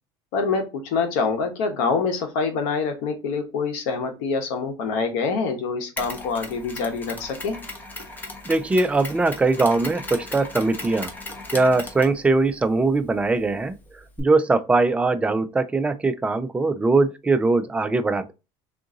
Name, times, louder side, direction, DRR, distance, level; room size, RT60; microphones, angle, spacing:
voice 1, 0.3-7.5, left 4 dB, 80° left, 1.0 m, -25 dB
Mechanisms, 6.0-14.2, left 2 dB, 15° left, 1.0 m, -38 dB
voice 2, 8.5-11.1 11.5-18.3, right 3 dB, 10° right, 0.3 m, -21 dB
3.7 x 2.5 x 3.8 m
cardioid pair, 135°, 10 cm